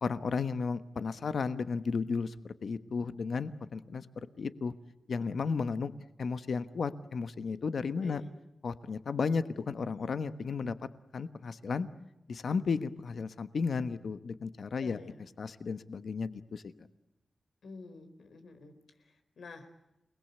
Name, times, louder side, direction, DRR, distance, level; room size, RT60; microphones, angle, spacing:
voice 1, 0.0-4.1 4.4-4.7 5.1-5.9 6.2-8.2 8.6-10.7 11.1-11.9 12.3-15.0 15.4-16.6, left 5 dB, 65° left, 13 dB, 1.2 m, -33 dB
voice 2, 7.8-8.3 14.8-15.2 17.6-19.8, left 3 dB, 85° left, 7 dB, 4.4 m, -50 dB
29.5 x 20.5 x 8.3 m, 0.89 s
wide cardioid pair, 150°, 0 cm